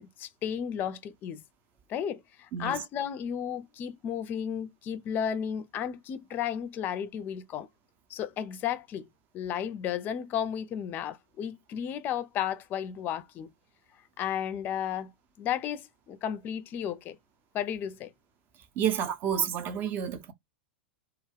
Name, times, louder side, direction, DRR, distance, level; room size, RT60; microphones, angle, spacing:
voice 1, 0.0-1.4 1.9-7.7 8.1-9.1 9.3-13.5 14.2-15.1 15.4-17.2 17.5-18.1, left 9 dB, 35° left, 0.4 m, -33 dB
voice 2, 18.8-20.3, right 8 dB, 35° right, 0.6 m, -29 dB
2.3 x 2.2 x 3.3 m
hypercardioid pair, 100°, 6 cm